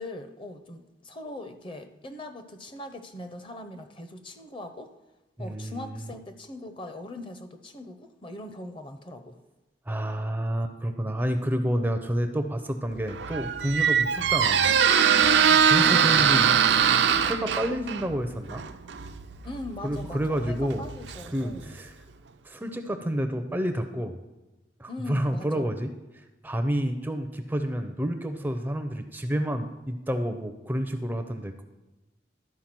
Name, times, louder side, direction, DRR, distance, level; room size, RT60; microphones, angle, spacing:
voice 1, 0.0-4.9 5.4-9.4 15.3-15.7 19.4-21.7 24.9-25.8, left 1 dB, 30° left, 8 dB, 0.6 m, -40 dB
voice 2, 5.4-6.1 9.9-14.8 15.7-16.9 17.2-18.6 19.8-20.9 21.3-22.0 22.4-24.2 24.8-31.6, equal, 10° right, 7 dB, 0.5 m, -29 dB
Squeak, 13.0-21.7, right 7 dB, 85° right, 0.5 m, -23 dB
12.0 x 4.7 x 5.9 m, 1.1 s
head